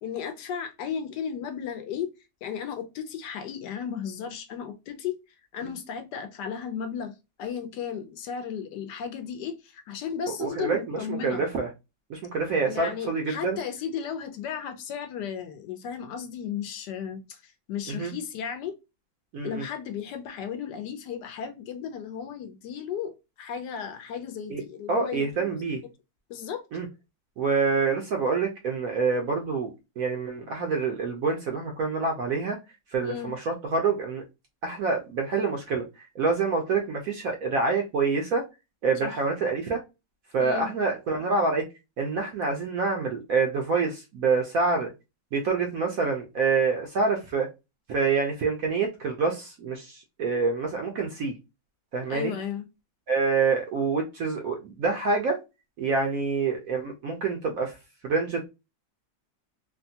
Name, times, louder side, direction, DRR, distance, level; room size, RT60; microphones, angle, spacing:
voice 1, 0.0-2.1 2.4-5.1 5.5-7.1 7.4-11.4 12.7-18.8 19.4-25.5 26.3-26.6 30.4-30.5 33.0-33.3 39.0-39.2 40.4-40.7 52.1-52.6, left 7 dB, 70° left, 1.1 m, -34 dB
voice 2, 10.4-11.7 12.1-13.6 17.9-18.1 19.3-19.6 24.5-24.6 24.9-25.8 26.7-26.9 27.4-29.7 30.0-32.6 32.9-34.2 34.6-35.8 36.2-38.4 38.8-39.8 40.3-41.6 42.0-44.9 45.3-47.5 47.9-51.3 51.9-52.3 53.1-55.4 55.8-57.7 58.0-58.5, right 4 dB, 65° right, 0.9 m, -26 dB
3.4 x 2.2 x 2.6 m
omnidirectional pair, 2.0 m